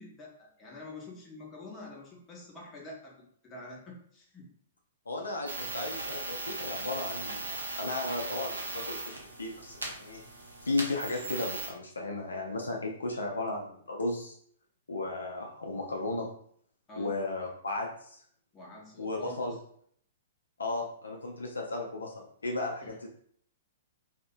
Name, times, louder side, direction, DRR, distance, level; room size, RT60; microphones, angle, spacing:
voice 1, 0.0-3.1 3.4-4.4 16.9-17.1 18.5-19.6 22.8-22.9, left 2 dB, 20° left, -3 dB, 0.7 m, -47 dB
voice 2, 5.1-10.2 10.6-14.3 14.9-16.3 17.0-18.2 19.0-19.6 20.6-23.1, left 2 dB, 75° left, 1 dB, 0.4 m, -35 dB
sound 1, 5.5-11.7, right 3 dB, 80° right, 0.6 m, -38 dB
2.6 x 2.0 x 2.5 m, 0.63 s
figure-of-eight pair, 110°, 0 cm